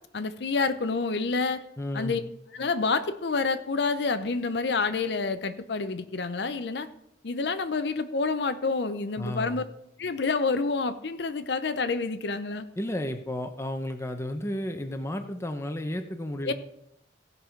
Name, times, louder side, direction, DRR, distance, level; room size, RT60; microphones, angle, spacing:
voice 1, 0.1-1.6 1.9-2.2 2.5-6.9 7.2-9.6 10.0-12.7 16.5-16.6, left 4 dB, 65° left, 11 dB, 0.6 m, -28 dB
voice 2, 1.8-2.2 9.2-9.6 12.8-16.5, left 1 dB, 15° left, 6 dB, 0.7 m, -33 dB
16.0 x 5.5 x 4.4 m, 0.78 s
head